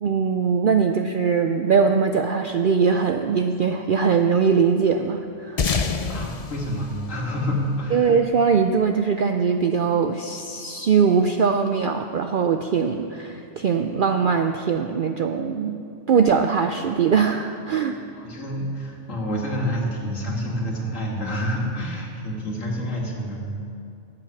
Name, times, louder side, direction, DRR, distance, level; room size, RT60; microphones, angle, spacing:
voice 1, 0.0-5.7 7.9-15.8 16.1-18.0, right 6 dB, 65° right, 6 dB, 0.5 m, -21 dB
sound 1, 5.6-8.4, left 5 dB, 45° left, 0.5 m, -28 dB
voice 2, 6.1-8.2 18.1-23.4, equal, 70° left, -1 dB, 2.3 m, -28 dB
12.0 x 8.2 x 7.2 m, 2.5 s
omnidirectional pair, 1.4 m